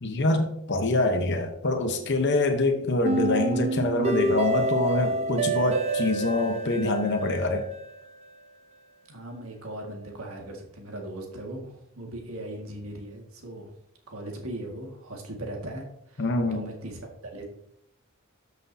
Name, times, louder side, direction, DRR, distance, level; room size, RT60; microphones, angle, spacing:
voice 1, 0.0-7.7 16.2-16.6, left 2 dB, 55° left, 5 dB, 0.9 m, -25 dB
sound 1, 3.0-8.1, right 2 dB, 30° right, 0.6 m, -28 dB
voice 2, 9.1-13.7 14.1-17.4, right 1 dB, 75° right, 1 dB, 1.9 m, -39 dB
13.0 x 6.1 x 2.7 m, 0.75 s
head